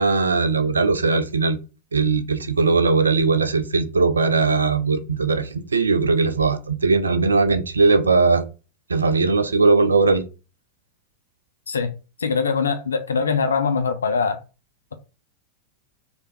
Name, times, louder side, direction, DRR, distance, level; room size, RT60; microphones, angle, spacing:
voice 1, 0.0-1.6 1.9-8.4 8.9-10.2, right 4 dB, 75° right, 0.5 m, -19 dB
voice 2, 12.2-14.4, left 5 dB, 70° left, 0.5 m, -22 dB
3.3 x 2.3 x 4.0 m
figure-of-eight pair, 90°, 0 cm